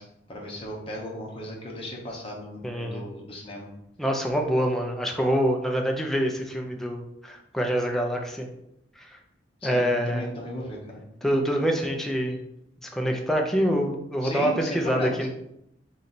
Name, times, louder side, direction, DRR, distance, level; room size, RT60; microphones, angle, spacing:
voice 1, 0.0-3.7 9.6-11.0 14.2-15.3, left 1 dB, 30° left, -1 dB, 1.0 m, -36 dB
voice 2, 2.6-3.0 4.0-8.5 9.0-9.2 9.6-10.2 11.2-12.4 12.8-15.3, equal, ahead, 1 dB, 0.5 m, -26 dB
3.9 x 3.2 x 4.2 m, 0.80 s
head